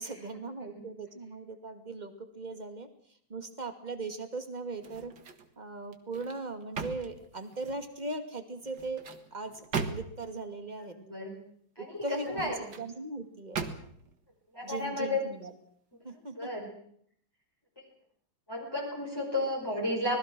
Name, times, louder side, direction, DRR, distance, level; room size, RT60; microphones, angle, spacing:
voice 1, 0.0-5.1 5.6-9.0 9.3-11.0 11.8-13.6 14.6-15.5 16.0-16.5, right 3 dB, 20° right, 7 dB, 2.4 m, -39 dB
sound 1, 4.8-5.5 5.9-7.9 8.6-10.4 12.1-12.9 13.5-14.1 14.6-14.8, right 5 dB, 60° right, 2.3 m, -39 dB
voice 2, 11.0-11.3 11.8-12.5 14.5-15.2 16.4-16.7 18.5-20.2, left 2 dB, 10° left, -3 dB, 4.9 m, -33 dB
25.5 x 20.0 x 6.2 m, 0.64 s
omnidirectional pair, 2.2 m